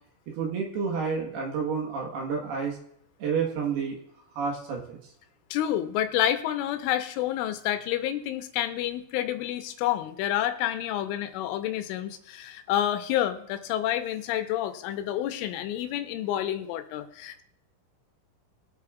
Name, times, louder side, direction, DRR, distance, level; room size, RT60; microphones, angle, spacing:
voice 1, 0.3-2.8 3.2-4.0 4.3-5.0, right 5 dB, 65° right, 1 dB, 2.9 m, -30 dB
voice 2, 5.5-17.4, left 12 dB, 85° left, 8 dB, 3.2 m, -29 dB
23.0 x 8.3 x 2.4 m, 0.72 s
omnidirectional pair, 5.7 m